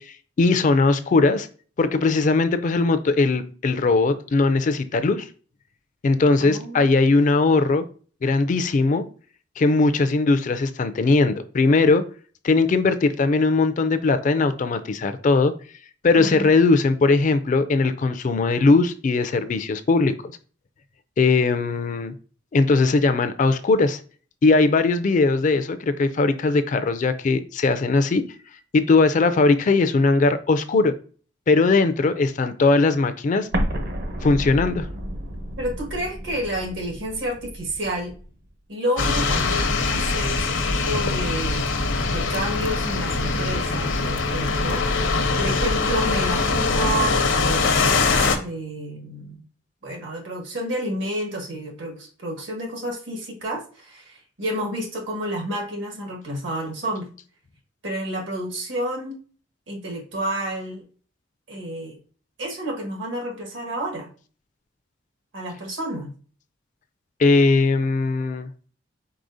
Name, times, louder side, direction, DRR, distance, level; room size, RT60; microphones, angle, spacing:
voice 1, 0.0-1.5 1.8-5.3 6.0-7.9 8.2-9.1 9.6-12.0 12.4-15.5 16.0-20.1 21.2-22.1 22.5-24.0 24.4-28.2 28.7-31.0 31.5-33.5 34.2-34.9 67.2-68.5, left 3 dB, 40° left, 0.4 m, -19 dB
voice 2, 6.4-6.9 16.2-16.5 35.6-38.1 38.7-41.7 42.1-45.0 45.4-49.5 49.8-57.1 57.8-59.2 59.7-60.8 61.5-62.0 62.4-64.1 65.3-66.1, right 1 dB, 75° right, 1.4 m, -30 dB
Explosion, 33.5-38.3, equal, 55° right, 0.8 m, -31 dB
sound 1, 39.0-48.4, left 3 dB, 80° left, 0.7 m, -22 dB
4.9 x 4.1 x 2.6 m
head